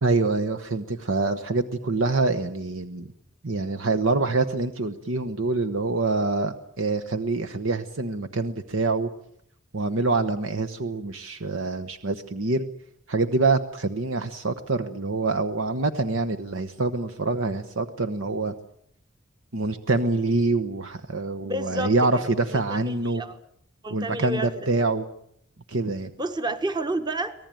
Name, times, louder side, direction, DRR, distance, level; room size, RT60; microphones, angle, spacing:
voice 1, 0.0-3.1 3.4-9.1 9.7-12.7 13.1-18.5 19.5-23.2 23.9-25.0 25.7-26.1, right 3 dB, 70° right, 9 dB, 1.1 m, -25 dB
voice 2, 21.4-22.2 22.5-23.4 23.8-24.5 26.2-27.3, right 1 dB, 20° right, 9 dB, 1.2 m, -30 dB
25.0 x 18.5 x 9.1 m, 0.71 s
head